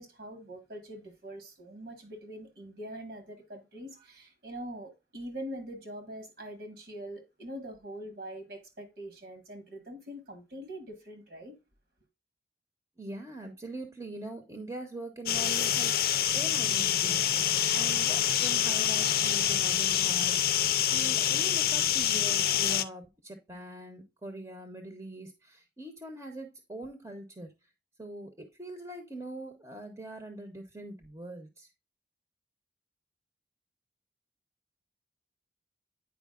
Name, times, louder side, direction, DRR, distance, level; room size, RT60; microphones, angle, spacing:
voice 1, 0.0-11.5, right 1 dB, 70° right, 1.7 m, -43 dB
voice 2, 13.0-16.0 16.3-27.5 28.0-31.7, right 1 dB, 20° right, 0.9 m, -42 dB
sound 1, 15.3-22.8, left 10 dB, 55° left, 0.5 m, -26 dB
9.3 x 5.0 x 2.4 m
head